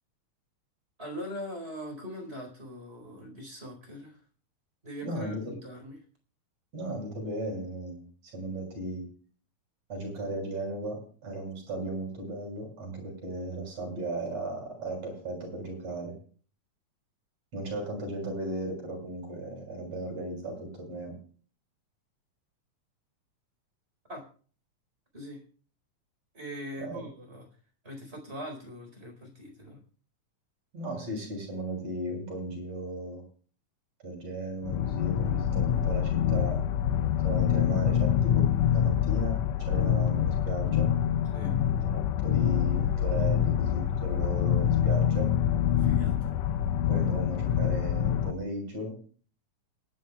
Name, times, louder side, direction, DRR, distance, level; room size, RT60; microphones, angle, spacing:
voice 1, 1.0-4.2 4.8-6.0 24.1-24.2 25.1-25.4 26.3-27.5 27.8-29.8 41.3-41.6 45.8-46.3, equal, 20° right, 2 dB, 4.4 m, -41 dB
voice 2, 5.0-5.6 6.7-9.0 9.9-16.1 17.5-21.2 26.8-27.0 30.7-33.2 34.0-36.6 37.2-40.9 41.9-45.3 46.9-48.9, right 1 dB, 60° right, 1 dB, 7.8 m, -36 dB
sound 1, 34.6-48.3, left 9 dB, 75° left, 1.7 m, -26 dB
28.5 x 10.5 x 2.3 m, 0.43 s
omnidirectional pair, 3.4 m